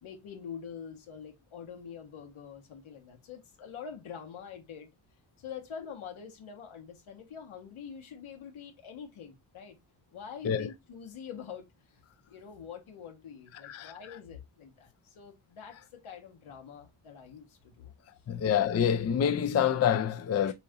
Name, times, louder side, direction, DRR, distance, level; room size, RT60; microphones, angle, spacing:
voice 1, 0.0-4.9 5.4-9.8 10.1-12.0 12.3-17.9 20.4-20.5, left 7 dB, 90° left, 1.6 m, -45 dB
voice 2, 18.3-20.5, left 8 dB, 35° left, 0.4 m, -27 dB
6.9 x 2.6 x 2.9 m
wide cardioid pair, 140°, 48 cm